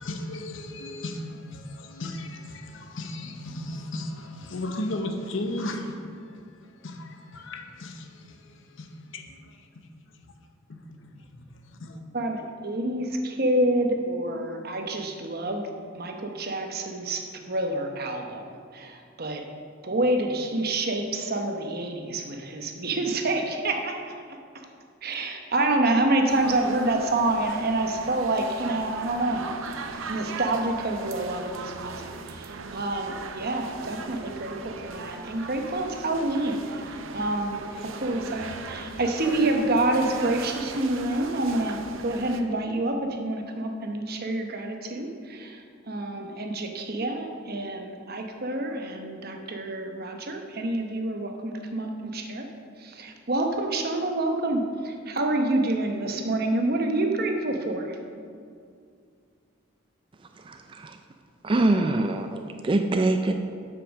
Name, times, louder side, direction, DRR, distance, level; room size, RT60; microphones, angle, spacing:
voice 1, 0.0-10.2 10.7-12.0, left 1 dB, 70° left, 0.8 m, -36 dB
voice 2, 12.1-18.5 18.7-19.4 19.8-24.2 24.5-24.7 25.0-29.5 30.1-52.5 52.8-58.0, right 2 dB, 50° right, 0.9 m, -28 dB
sound 1, 26.3-42.4, right 4 dB, 80° right, 0.6 m, -39 dB
voice 3, 60.4-61.0 61.4-63.3, right 2 dB, 25° right, 0.3 m, -24 dB
8.0 x 5.9 x 6.3 m
head